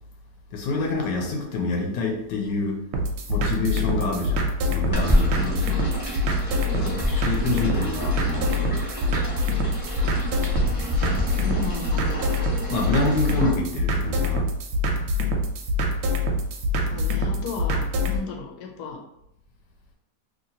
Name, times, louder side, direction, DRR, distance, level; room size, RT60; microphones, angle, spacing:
voice 1, 0.5-2.8 3.3-5.5 6.7-8.8 12.7-14.5, left 3 dB, 90° left, 1 dB, 1.3 m, -27 dB
sound 1, 2.9-18.2, left 1 dB, 90° right, 1.2 m, -25 dB
sound 2, 4.9-13.5, equal, 15° left, 0.9 m, -28 dB
voice 2, 5.3-5.9 6.7-7.1 10.5-12.3 16.9-19.0, left 5 dB, 70° left, 1 dB, 1.1 m, -36 dB
2.8 x 2.8 x 2.7 m, 0.82 s
omnidirectional pair, 1.8 m